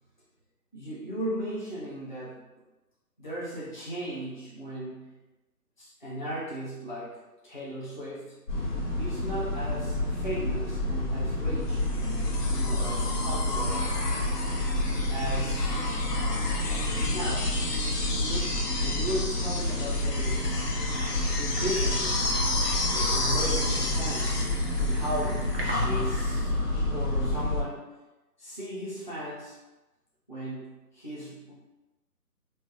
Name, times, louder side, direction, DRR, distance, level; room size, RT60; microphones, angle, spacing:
voice 1, 0.7-2.4 3.2-5.1 5.8-7.2 7.4-8.4 9.0-13.8 15.1-15.9 16.7-17.5 18.1-18.5 18.8-20.6 21.3-22.2 22.9-24.4 24.8-27.9 28.4-29.6 30.3-31.6, right 1 dB, 30° left, -9 dB, 0.5 m, -36 dB
sound 1, 8.5-27.6, left 1 dB, 55° left, 1.4 m, -29 dB
sound 2, 11.8-25.8 27.2-27.3, left 2 dB, 75° left, 0.8 m, -33 dB
sound 3, 20.3-26.4, equal, 40° right, 0.4 m, -43 dB
3.2 x 2.2 x 2.8 m, 1.1 s
hypercardioid pair, 165°, 48 cm